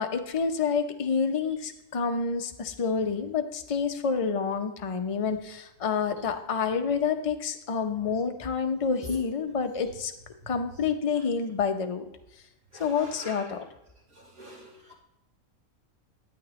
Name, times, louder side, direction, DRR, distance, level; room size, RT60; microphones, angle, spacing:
voice 1, 0.0-10.1 10.5-12.1 12.8-13.6, left 5 dB, 35° left, 0.6 m, -28 dB
voice 2, 12.7-13.5 14.4-14.9, equal, 70° right, 3.2 m, -44 dB
11.5 x 9.6 x 3.1 m
omnidirectional pair, 1.4 m